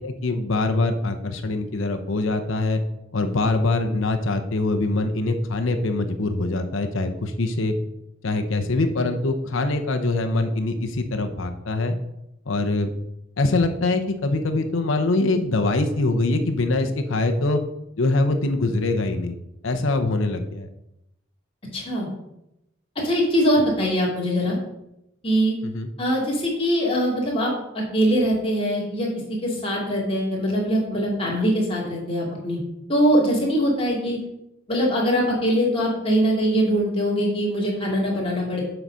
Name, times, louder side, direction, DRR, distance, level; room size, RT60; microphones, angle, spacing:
voice 1, 0.0-2.8 3.1-7.7 8.2-12.0 12.5-12.9 13.4-17.6 18.0-19.4 19.6-20.7 25.6-25.9, left 2 dB, 75° left, 5 dB, 0.7 m, -23 dB
voice 2, 21.7-22.1 23.0-24.6 25.2-25.5 26.0-32.6 32.9-34.2 34.7-38.6, equal, 25° left, -4 dB, 2.4 m, -22 dB
7.8 x 4.1 x 6.2 m, 0.86 s
head